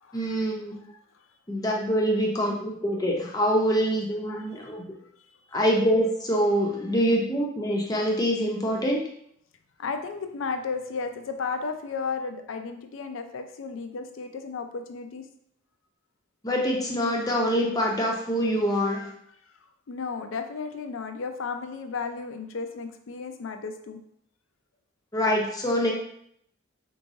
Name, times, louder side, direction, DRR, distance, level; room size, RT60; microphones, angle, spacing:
voice 1, 0.1-0.8 1.5-4.8 5.5-9.0 16.4-19.1 25.1-25.9, equal, 20° left, -1 dB, 0.6 m, -25 dB
voice 2, 9.8-15.2 19.9-24.0, left 5 dB, 75° left, 7 dB, 0.4 m, -33 dB
4.4 x 3.1 x 2.6 m, 0.69 s
head